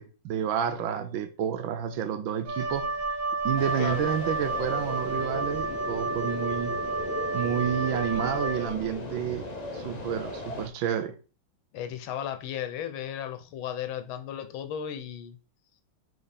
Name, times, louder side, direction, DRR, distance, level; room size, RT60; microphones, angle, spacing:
voice 1, 0.0-2.9 3.4-6.7 7.3-9.5 9.7-11.1, right 9 dB, 75° right, 1.5 m, -30 dB
Wind instrument woodwind instrument, 2.4-9.0, right 3 dB, 50° right, 1.3 m, -31 dB
sound 1, 3.6-10.7, left 2 dB, 55° left, 0.4 m, -37 dB
voice 2, 11.7-15.4, left 9 dB, 80° left, 1.5 m, -35 dB
5.3 x 4.4 x 4.1 m
omnidirectional pair, 2.2 m